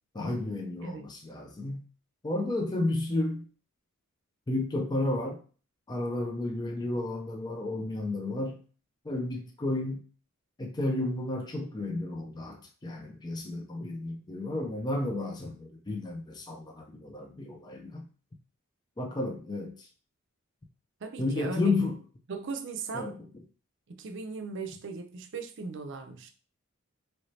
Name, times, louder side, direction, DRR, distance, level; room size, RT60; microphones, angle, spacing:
voice 1, 0.1-1.8 2.2-3.5 4.5-5.4 5.9-8.6 9.0-10.1 10.6-18.1 19.0-19.9 21.2-22.0 22.9-23.3, left 2 dB, 20° left, 2 dB, 0.4 m, -32 dB
voice 2, 21.0-21.9 22.3-23.1 23.9-26.3, right 4 dB, 60° right, 6 dB, 0.5 m, -38 dB
3.1 x 2.7 x 3.1 m, 0.39 s
head